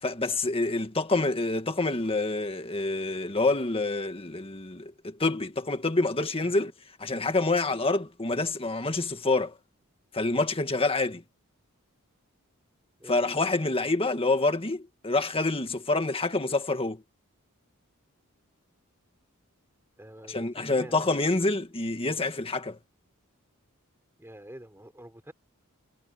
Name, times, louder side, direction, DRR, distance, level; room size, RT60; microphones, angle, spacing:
voice 1, 0.0-6.7 7.0-9.5 10.1-11.2 13.1-17.0 20.3-22.8, left 2 dB, 25° left, 1.8 m, -27 dB
voice 2, 20.0-20.9 24.2-25.3, right 1 dB, 10° right, 5.2 m, -47 dB
head